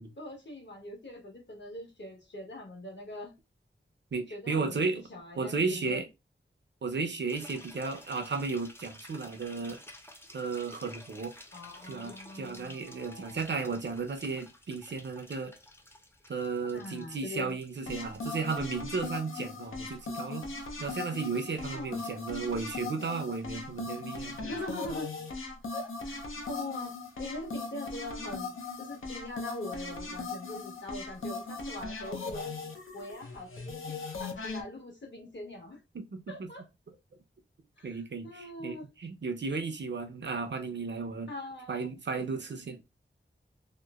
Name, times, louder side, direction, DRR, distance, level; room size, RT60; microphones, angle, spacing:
voice 1, 0.2-3.3 4.3-6.0 11.5-13.4 16.7-17.6 21.7-22.2 24.3-25.1 25.7-32.5 32.9-35.8 36.3-36.6 37.8-38.9 41.3-41.9, left 2 dB, 60° left, 1.2 m, -42 dB
voice 2, 4.1-5.0 5.4-6.0 6.8-9.8 10.3-11.3 11.9-15.5 16.3-20.4 20.8-24.5 35.9-36.5 37.8-41.3 41.7-42.8, right 4 dB, 60° right, 0.6 m, -34 dB
sound 1, 7.3-18.7, left 1 dB, 10° left, 0.5 m, -52 dB
sound 2, 17.9-34.6, left 3 dB, 80° left, 0.6 m, -39 dB
2.9 x 2.0 x 2.3 m
wide cardioid pair, 45°, 21 cm